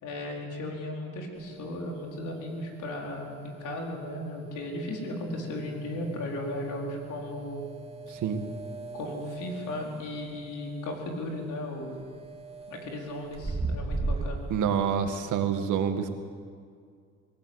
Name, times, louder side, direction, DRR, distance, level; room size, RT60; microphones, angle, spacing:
voice 1, 0.0-7.6 8.1-8.2 8.9-12.0 12.7-14.4, left 1 dB, 80° left, 0 dB, 4.5 m, -36 dB
sound 1, 1.4-14.6, right 3 dB, 20° right, 2.8 m, -39 dB
voice 2, 8.1-8.4 14.5-16.1, right 7 dB, 80° right, 6 dB, 2.0 m, -27 dB
24.0 x 16.5 x 8.2 m, 2.2 s
cardioid pair, 90°, 30 cm